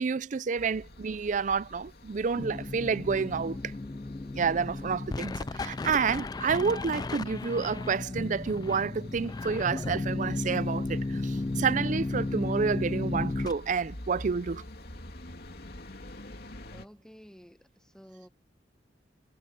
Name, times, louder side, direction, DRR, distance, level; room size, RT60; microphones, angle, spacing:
voice 1, 0.0-3.6 4.3-14.6, right 5 dB, 45° right, 0.4 m, -29 dB
sound 1, 0.6-16.9, left 1 dB, 60° left, 2.9 m, -48 dB
sound 2, 2.4-13.5, left 2 dB, 20° left, 0.3 m, -34 dB
voice 2, 16.7-18.3, equal, 5° left, 1.1 m, -52 dB
head